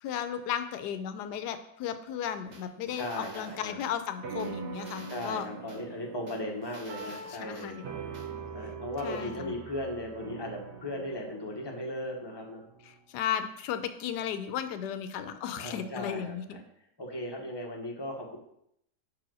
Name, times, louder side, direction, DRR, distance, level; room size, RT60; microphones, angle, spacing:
voice 1, 0.0-5.5 7.1-7.8 9.0-9.5 12.9-16.6, left 9 dB, 80° left, 9 dB, 1.2 m, -35 dB
sound 1, 2.5-3.9 4.4-5.8 6.3-7.7 8.1-8.3, right 1 dB, 30° right, 1.1 m, -50 dB
voice 2, 2.9-3.9 5.1-7.8 8.5-12.6 15.6-16.6 17.0-18.4, left 1 dB, 20° left, 0 dB, 0.9 m, -37 dB
sound 2, 4.2-12.9, right 5 dB, 70° right, 1.7 m, -43 dB
5.6 x 4.8 x 6.1 m, 0.75 s
omnidirectional pair, 1.8 m